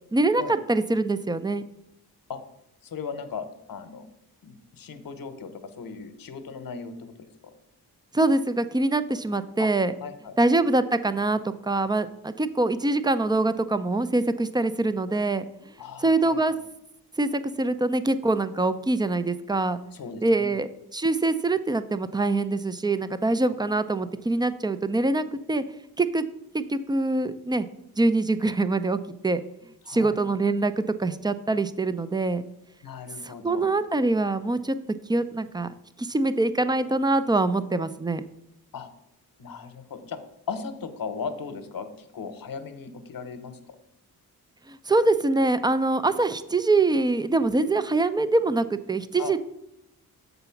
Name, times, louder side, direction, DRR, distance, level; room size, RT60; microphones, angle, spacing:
voice 1, 0.1-1.6 8.1-9.9 10.4-15.4 16.0-16.5 17.2-19.8 20.2-25.6 26.0-26.3 26.5-27.7 28.0-29.4 29.9-32.4 33.2-34.8 35.1-35.7 36.0-38.2 44.7-49.4, right 2 dB, 10° right, 13 dB, 0.3 m, -24 dB
voice 2, 2.8-4.1 4.4-5.5 5.8-7.3 9.6-9.7 10.0-10.4 15.8-16.4 19.9-20.5 29.8-30.2 32.8-33.7 38.7-38.9 39.4-40.2 40.5-43.6 49.2-49.4, left 5 dB, 60° left, 10 dB, 0.9 m, -37 dB
6.7 x 4.0 x 5.7 m, 0.84 s
cardioid pair, 70°, 39 cm